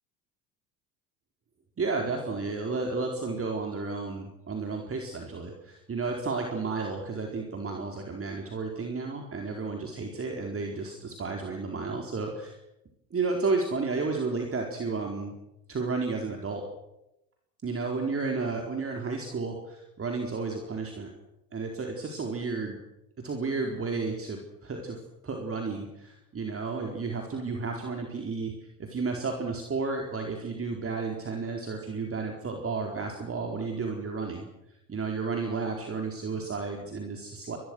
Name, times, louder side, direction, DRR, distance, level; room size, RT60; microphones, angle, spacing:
voice 1, 1.8-12.6 13.1-15.3 15.7-16.6 17.6-21.1 21.5-22.8 23.2-25.0 25.2-28.5 28.8-34.5 34.9-37.6, right 4 dB, 25° right, 2 dB, 4.5 m, -32 dB
26.5 x 22.0 x 6.4 m, 0.88 s
hypercardioid pair, 75°, 48 cm